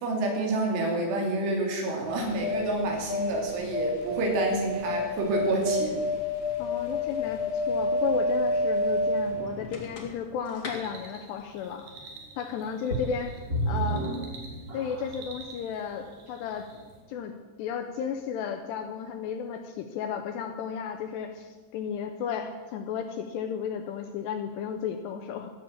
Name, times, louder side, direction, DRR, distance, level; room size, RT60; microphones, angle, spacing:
voice 1, 0.0-6.0, right 2 dB, 80° right, 1 dB, 5.0 m, -28 dB
sound 1, 2.1-10.3 10.6-10.7, left 2 dB, 50° left, 1.5 m, -29 dB
voice 2, 6.6-11.9 12.4-14.1 14.7-16.7 17.1-17.3 17.6-25.5, left 7 dB, 80° left, 5 dB, 2.5 m, -34 dB
sound 2, 10.7-17.0, right 3 dB, 60° right, 3.8 m, -49 dB
sound 3, 12.9-15.3 16.0-16.1 16.7-16.8, right 2 dB, 30° right, 2.8 m, -31 dB
14.5 x 7.4 x 8.5 m, 1.3 s
omnidirectional pair, 5.5 m